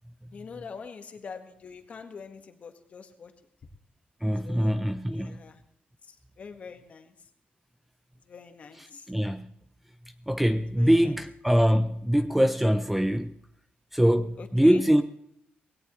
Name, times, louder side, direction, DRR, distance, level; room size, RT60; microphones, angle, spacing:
voice 1, 0.3-3.3 4.4-4.8 5.1-5.6 6.1-7.1 8.3-9.1 10.8-11.1 14.4-14.8, left 5 dB, 45° left, 1.7 m, -44 dB
voice 2, 4.2-5.4 8.8-9.5 10.3-13.3 13.9-15.0, equal, 5° right, 0.5 m, -23 dB
18.5 x 17.5 x 3.2 m
cardioid pair, 140°, 3 cm